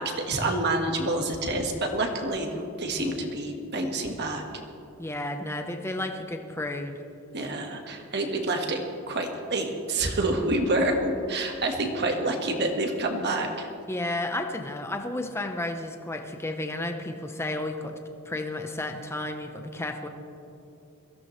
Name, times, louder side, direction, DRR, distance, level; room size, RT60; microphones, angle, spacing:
voice 1, 0.0-4.4 7.3-8.8 9.1-13.7, right 2 dB, 50° right, 3 dB, 1.7 m, -28 dB
voice 2, 5.0-7.0 13.9-18.0 18.2-20.1, left 1 dB, 10° left, 4 dB, 0.9 m, -32 dB
22.5 x 15.5 x 3.3 m, 2.8 s
head